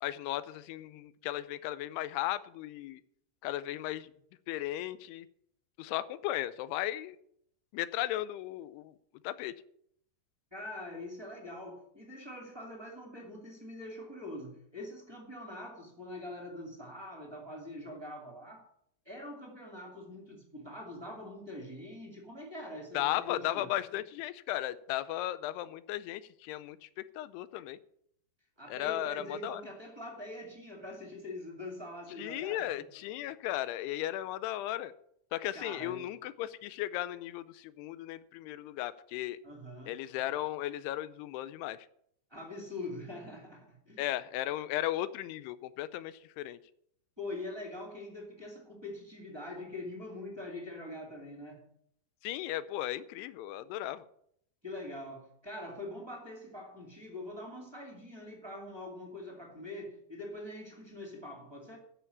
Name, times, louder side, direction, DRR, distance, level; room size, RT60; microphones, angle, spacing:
voice 1, 0.0-3.0 3.4-4.1 4.5-5.3 5.8-7.2 7.7-9.0 9.2-9.6 22.9-27.8 28.7-29.6 32.2-34.9 35.3-39.4 39.9-41.9 44.0-46.6 52.2-54.1, left 14 dB, 80° left, 16 dB, 2.4 m, -36 dB
voice 2, 10.5-18.7 19.0-23.7 28.6-32.7 35.5-36.0 39.4-39.9 42.3-44.0 47.2-51.6 54.6-61.8, left 1 dB, 15° right, 0 dB, 0.9 m, -44 dB
13.5 x 5.7 x 8.3 m, 0.69 s
omnidirectional pair, 5.1 m